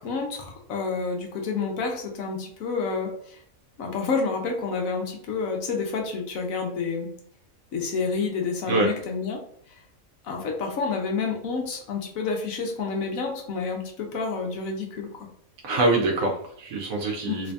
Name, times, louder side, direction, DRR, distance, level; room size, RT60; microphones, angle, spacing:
voice 1, 0.0-3.4 3.8-7.1 7.7-9.4 10.2-15.3 17.3-17.5, left 4 dB, 75° left, 2 dB, 1.2 m, -29 dB
voice 2, 15.6-17.5, right 2 dB, 80° right, 0 dB, 1.1 m, -24 dB
3.2 x 2.6 x 3.4 m, 0.62 s
omnidirectional pair, 1.4 m